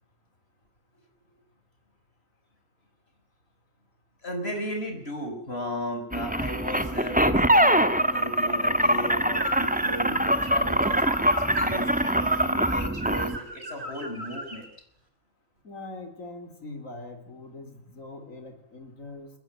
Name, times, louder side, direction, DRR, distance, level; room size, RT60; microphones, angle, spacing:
voice 1, 4.2-14.7, equal, 50° left, 4 dB, 5.7 m, -35 dB
sound 1, 6.1-13.4, right 1 dB, 5° right, 1.4 m, -23 dB
sound 2, 9.3-14.7, right 1 dB, 50° right, 4.3 m, -37 dB
voice 2, 15.6-19.3, left 2 dB, 75° left, 6 dB, 4.1 m, -42 dB
23.0 x 20.0 x 9.1 m, 0.66 s
omnidirectional pair, 1.4 m